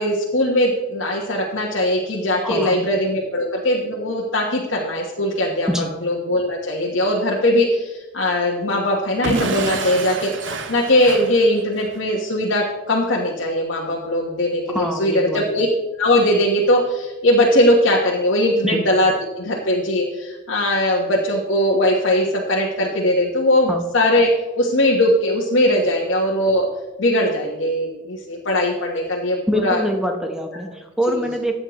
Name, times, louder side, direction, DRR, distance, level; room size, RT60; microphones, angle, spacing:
voice 1, 0.0-5.7 6.0-15.7 16.0-24.3 24.6-26.7 27.0-29.8 31.1-31.2, left 1 dB, 80° left, -3 dB, 1.3 m, -20 dB
voice 2, 2.4-2.8 5.7-5.9 14.7-15.4 18.6-18.8 23.7-23.8 29.5-31.6, equal, 5° right, 3 dB, 0.9 m, -24 dB
Explosion / Shatter, 9.2-12.0, right 3 dB, 75° right, 0.8 m, -28 dB
13.5 x 8.7 x 3.1 m, 1.1 s
head